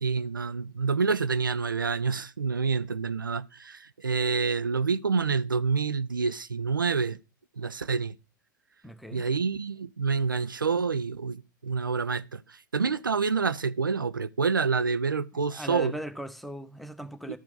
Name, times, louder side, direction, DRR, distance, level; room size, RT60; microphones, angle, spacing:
voice 1, 0.0-7.2 7.6-8.2 9.1-12.4 12.7-15.9, right 5 dB, 85° right, 0.4 m, -27 dB
voice 2, 8.8-9.3 15.3-17.4, equal, ahead, 0.7 m, -38 dB
12.5 x 4.5 x 3.8 m
figure-of-eight pair, 90°, 11 cm